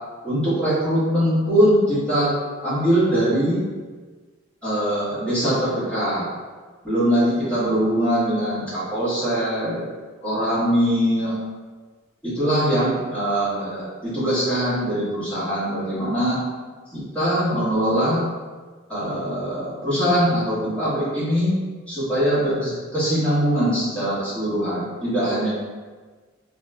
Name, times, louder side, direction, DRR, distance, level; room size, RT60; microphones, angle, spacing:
voice 1, 0.2-2.3 2.6-3.6 4.6-6.3 6.8-9.8 10.2-11.4 12.2-16.4 16.9-18.2 18.9-21.6 21.9-25.5, equal, 5° left, -12 dB, 1.2 m, -22 dB
2.7 x 2.2 x 3.4 m, 1.4 s
head